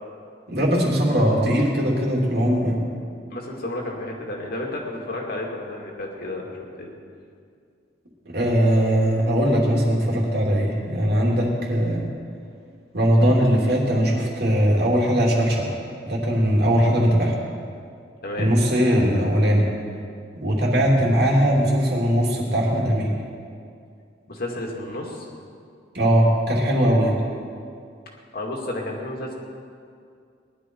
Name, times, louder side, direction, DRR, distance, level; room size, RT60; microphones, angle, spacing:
voice 1, 0.5-2.8 8.3-12.0 12.9-15.7 16.0-17.3 18.4-19.6 20.3-23.1 25.9-27.2, equal, 60° right, -2 dB, 2.9 m, -20 dB
voice 2, 3.3-6.9 18.2-18.5 24.3-25.3 28.3-29.3, left 1 dB, 55° left, -1 dB, 2.3 m, -31 dB
19.5 x 11.5 x 4.6 m, 2.3 s
head